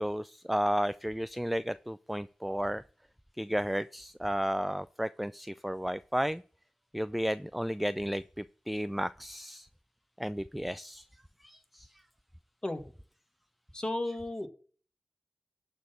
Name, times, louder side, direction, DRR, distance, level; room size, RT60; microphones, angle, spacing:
voice 1, 0.0-2.8 3.4-6.4 6.9-9.7 10.2-11.1 11.4-11.9, equal, ahead, 15 dB, 0.3 m, -33 dB
voice 2, 13.7-14.5, left 1 dB, 25° left, 5 dB, 1.8 m, -34 dB
11.5 x 4.1 x 6.9 m, 0.42 s
cardioid pair, 50°, 3 cm